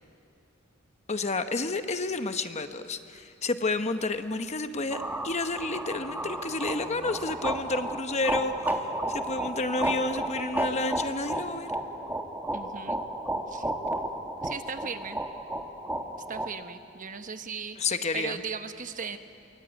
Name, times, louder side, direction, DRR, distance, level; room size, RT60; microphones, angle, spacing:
voice 1, 1.1-8.8 9.1-11.7 17.8-18.4, left 3 dB, 35° left, 9 dB, 1.0 m, -30 dB
sound 1, 4.2-8.6, left 2 dB, 10° left, 3.1 m, -54 dB
sound 2, 4.9-16.5, right 1 dB, 10° right, 1.4 m, -33 dB
voice 2, 12.5-13.0 13.5-13.7 14.4-15.2 16.3-19.2, right 5 dB, 40° right, 9 dB, 1.0 m, -37 dB
23.0 x 22.5 x 9.1 m, 2.5 s
head